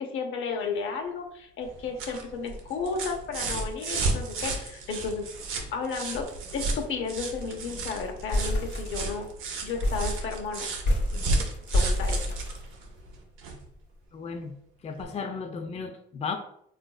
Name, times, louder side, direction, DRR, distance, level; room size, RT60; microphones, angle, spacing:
voice 1, 0.0-5.2 5.7-9.3 9.6-10.7 11.1-11.3 11.7-12.3, left 5 dB, 80° left, 3 dB, 0.6 m, -33 dB
sound 1, 1.6-13.7 15.0-15.1, right 3 dB, 90° right, 0.6 m, -33 dB
sound 2, 6.3-6.5 6.8-6.9 7.2-7.6 8.0-9.3 9.8-13.1, left 1 dB, 60° left, 1.0 m, -29 dB
voice 2, 14.1-14.5 14.8-16.3, left 5 dB, 35° left, 5 dB, 0.4 m, -34 dB
3.9 x 2.5 x 2.2 m, 0.70 s
cardioid pair, 90°, 20 cm